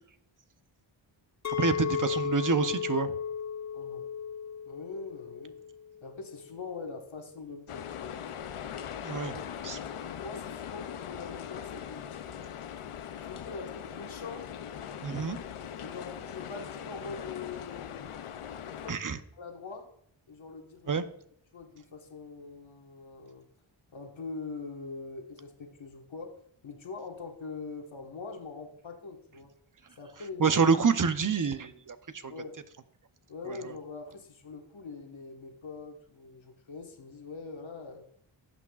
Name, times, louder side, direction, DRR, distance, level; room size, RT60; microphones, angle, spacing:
Chink clink, 1.4-6.6, left 8 dB, 35° left, 0.5 m, -35 dB
voice 1, 1.6-3.2 9.0-9.8 15.0-15.4 18.9-19.2 20.9-21.0 30.4-32.3 33.5-33.7, right 5 dB, 40° right, 11 dB, 0.7 m, -27 dB
voice 2, 3.7-4.1 4.6-5.5 6.0-8.2 9.2-9.6 9.9-12.1 13.1-14.5 15.8-18.0 18.4-19.0 19.3-19.9 20.3-21.1 21.5-23.4 23.9-26.3 26.6-29.5 29.9-30.5 32.2-32.6 33.3-38.0, left 4 dB, 65° left, 2 dB, 1.6 m, -43 dB
sound 1, 7.7-18.9, left 9 dB, 85° left, 0.7 m, -40 dB
16.0 x 6.0 x 2.4 m, 0.68 s
cardioid pair, 45°, 50 cm